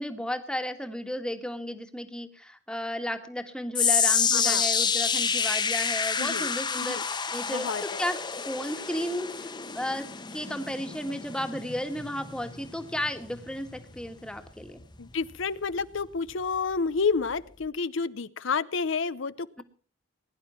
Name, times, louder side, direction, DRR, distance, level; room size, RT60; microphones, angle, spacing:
voice 1, 0.0-7.7 8.0-8.2 8.5-10.1 10.3-14.8, equal, 5° left, 7 dB, 1.7 m, -34 dB
sound 1, 3.7-16.1 16.4-16.7 17.4-17.5, left 6 dB, 25° left, 1.1 m, -29 dB
voice 2, 4.3-4.7 6.2-6.5 6.8-7.0 7.5-8.0 15.0-19.6, left 5 dB, 70° left, 15 dB, 0.7 m, -30 dB
20.5 x 11.0 x 5.7 m, 0.41 s
head